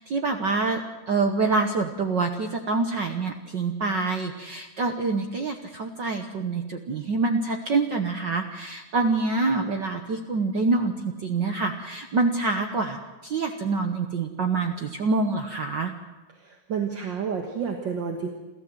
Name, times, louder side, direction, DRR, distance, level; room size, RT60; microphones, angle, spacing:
voice 1, 0.0-15.9, right 3 dB, 60° right, 5 dB, 1.1 m, -26 dB
voice 2, 16.4-18.3, right 6 dB, 45° right, 3 dB, 1.8 m, -30 dB
29.0 x 13.5 x 7.8 m, 1.1 s
omnidirectional pair, 3.6 m